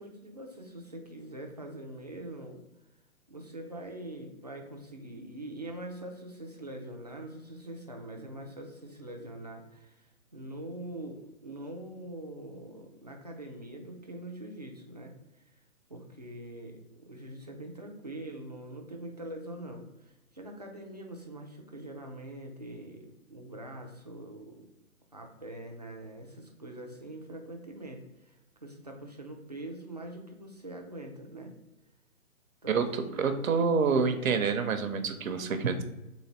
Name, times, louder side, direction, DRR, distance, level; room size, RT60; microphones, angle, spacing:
voice 1, 0.0-2.6 3.3-15.4 15.9-24.7 25.1-31.5 32.6-32.8 33.1-33.4, right 1 dB, 30° right, 2 dB, 0.4 m, -43 dB
voice 2, 32.7-35.8, right 5 dB, 70° right, 8 dB, 0.7 m, -27 dB
4.0 x 2.7 x 4.2 m, 0.96 s
hypercardioid pair, 155°, 42 cm